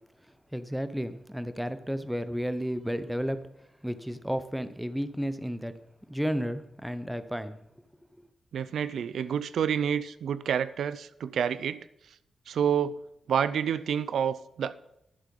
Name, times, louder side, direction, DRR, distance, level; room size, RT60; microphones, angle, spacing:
voice 1, 0.5-3.4 3.8-5.7 6.1-7.6, equal, ahead, 12 dB, 0.6 m, -32 dB
voice 2, 8.5-11.8 12.5-13.0 13.3-14.7, right 8 dB, 90° right, 15 dB, 0.4 m, -28 dB
11.0 x 7.7 x 5.3 m, 0.80 s
wide cardioid pair, 140°, 0 cm